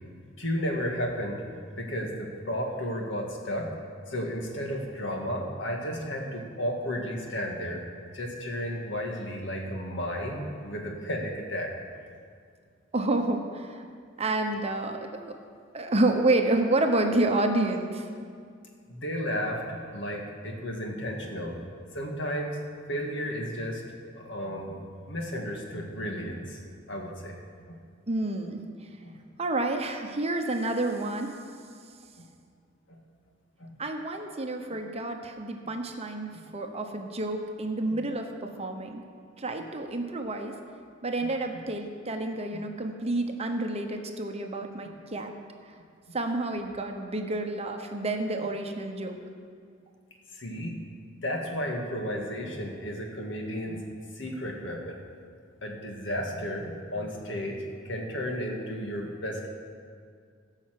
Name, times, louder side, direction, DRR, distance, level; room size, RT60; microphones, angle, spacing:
voice 1, 0.4-1.4 1.8-3.7 4.1-7.8 8.1-11.7 18.9-21.6 21.9-22.6 22.9-23.8 24.2-24.8 25.1-26.6 26.9-27.4 27.7-27.8 29.1-29.2 32.2-32.3 32.9-33.0 33.6-33.8 42.5-42.6 50.3-50.8 51.2-53.9 54.1-55.0 55.6-59.5, equal, 70° left, 1 dB, 1.9 m, -33 dB
voice 2, 12.9-13.8 14.2-15.3 15.7-18.1 28.1-28.9 29.4-31.3 33.8-39.0 39.4-40.6 41.0-45.3 46.1-49.2, right 2 dB, 35° right, 4 dB, 1.0 m, -29 dB
17.0 x 5.8 x 7.7 m, 2.1 s
head